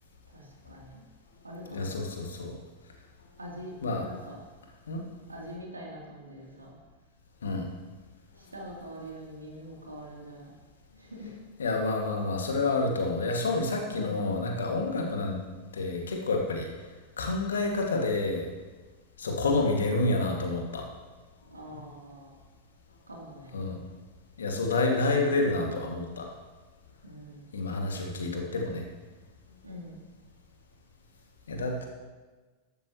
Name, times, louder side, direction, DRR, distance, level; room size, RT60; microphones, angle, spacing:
voice 1, 0.3-1.0 1.4-2.1 3.4-4.4 5.3-6.7 8.4-10.5 11.0-11.3 13.9-14.3 21.4-22.3 23.1-23.6 27.0-27.5 29.6-30.0, equal, 80° right, -3 dB, 3.4 m, -44 dB
voice 2, 1.7-2.5 3.8-4.1 4.9-5.0 7.4-7.6 11.6-15.4 15.7-16.7 17.2-18.5 19.2-20.8 23.5-23.8 24.4-26.3 27.5-28.8 31.5-31.9, left 2 dB, 70° left, 1 dB, 2.3 m, -28 dB
14.0 x 13.0 x 3.2 m, 1.3 s
figure-of-eight pair, 90°, 0 cm